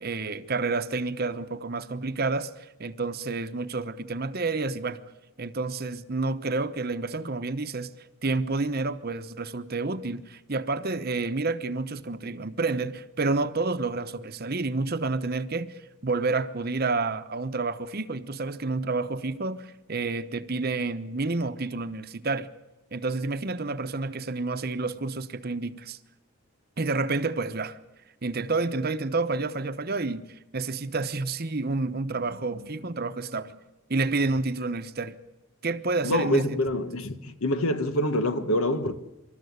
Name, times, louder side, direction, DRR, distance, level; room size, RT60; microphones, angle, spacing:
voice 1, 0.0-5.0 5.4-7.9 8.2-22.5 22.9-26.0 26.8-27.8 28.2-33.6 33.9-35.2 35.6-36.6, right 3 dB, 45° right, 0.9 m, -29 dB
voice 2, 36.0-38.9, left 1 dB, 70° left, 1.5 m, -26 dB
26.5 x 13.0 x 9.5 m
head